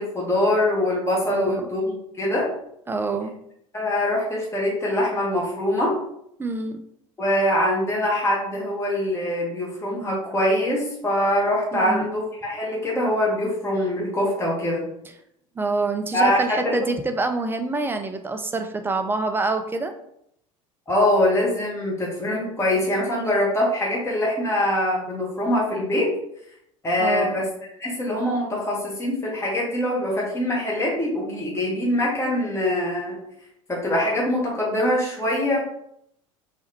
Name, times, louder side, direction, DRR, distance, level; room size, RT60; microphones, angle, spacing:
voice 1, 0.0-2.5 3.7-5.9 7.2-14.9 16.1-16.7 20.9-26.1 26.8-27.5 27.8-33.2 33.7-35.6, left 1 dB, 15° left, -5 dB, 1.4 m, -23 dB
voice 2, 1.3-1.6 2.9-3.3 6.4-6.8 11.7-12.1 15.6-19.9 27.0-27.4, right 3 dB, 15° right, 7 dB, 0.4 m, -26 dB
3.4 x 3.2 x 2.9 m, 0.74 s
figure-of-eight pair, 70°, 17 cm